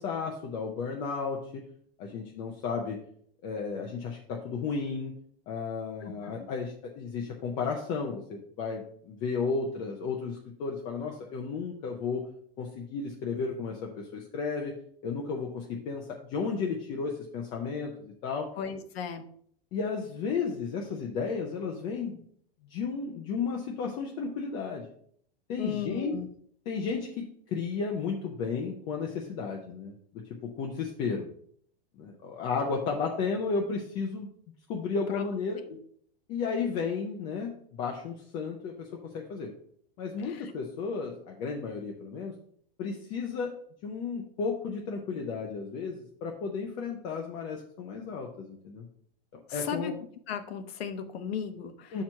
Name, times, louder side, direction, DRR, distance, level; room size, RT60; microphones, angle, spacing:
voice 1, 0.0-1.6 2.0-3.0 3.4-5.1 5.5-12.2 12.6-14.7 15.0-16.0 16.3-18.5 19.7-22.2 22.7-24.9 25.5-26.2 26.7-31.3 32.0-34.3 34.7-35.6 36.3-39.5 40.0-42.3 42.8-43.5 43.8-48.9 49.5-49.9 51.9-52.0, left 5 dB, 15° left, 0 dB, 0.4 m, -33 dB
voice 2, 6.0-6.5 18.6-19.3 25.6-26.3 35.1-35.2 35.6-35.8 40.2-40.5 49.5-49.9 50.3-52.0, left 7 dB, 80° left, 8 dB, 1.0 m, -36 dB
5.7 x 4.5 x 6.2 m, 0.62 s
supercardioid pair, 170°, 30 cm